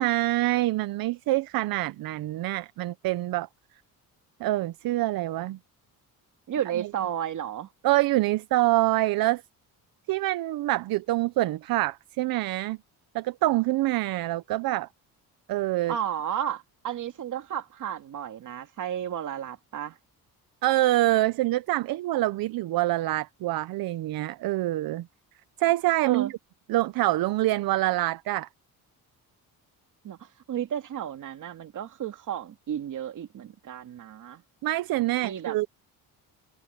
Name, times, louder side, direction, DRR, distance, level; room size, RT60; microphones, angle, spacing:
voice 1, 0.0-3.5 4.4-5.6 6.8-6.9 7.8-9.4 10.1-12.8 13.1-14.9 15.5-15.9 20.6-25.1 25.6-26.3 26.7-28.5 34.6-35.7, right 17 dB, 70° right, 0.7 m, -25 dB
voice 2, 6.5-7.7 15.9-20.0 26.1-26.3 30.0-34.4 35.2-35.6, right 10 dB, 55° right, 2.3 m, -33 dB
cardioid pair, 120°, 36 cm